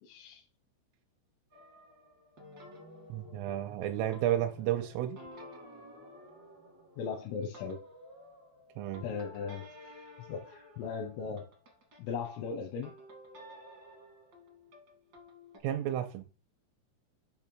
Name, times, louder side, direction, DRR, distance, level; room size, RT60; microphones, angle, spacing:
voice 1, 0.0-0.4 7.0-7.8 9.0-11.5 12.0-12.9, left 5 dB, 85° left, 3 dB, 3.6 m, -38 dB
sound 1, 1.5-12.1 12.8-15.6, left 1 dB, 60° right, 1.1 m, -53 dB
voice 2, 3.1-5.2 8.8-9.0 15.6-16.2, right 11 dB, 90° right, 4 dB, 3.3 m, -32 dB
8.6 x 2.9 x 6.1 m, 0.37 s
omnidirectional pair, 5.8 m